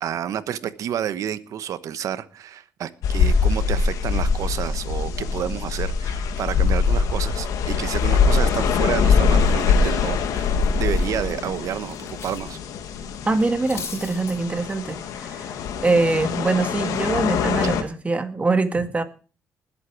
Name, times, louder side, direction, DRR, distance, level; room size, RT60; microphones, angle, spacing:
voice 1, 0.0-12.6, right 10 dB, 75° right, 1.2 m, -30 dB
sound 1, 3.0-17.8, left 5 dB, 85° left, 1.9 m, -23 dB
Cutlery silverware, 9.4-12.5 12.8-12.9 13.4-14.4, left 5 dB, 50° left, 4.8 m, -40 dB
voice 2, 13.3-19.0, right 3 dB, 25° right, 1.9 m, -23 dB
20.0 x 8.4 x 4.8 m
cardioid pair, 100°, 6 cm